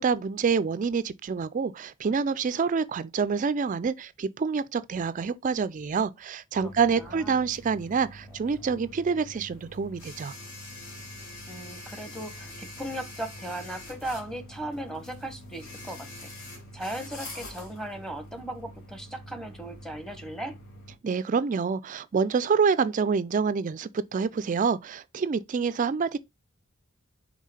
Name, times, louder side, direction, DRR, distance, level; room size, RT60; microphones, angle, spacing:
voice 1, 0.0-10.3 21.0-26.2, right 5 dB, 40° right, 0.3 m, -27 dB
sound 1, 6.5-21.0, left 1 dB, 75° left, 2.2 m, -45 dB
voice 2, 6.6-7.5 11.5-16.3 16.7-20.6, right 1 dB, 5° left, 0.9 m, -37 dB
5.6 x 3.5 x 4.9 m
head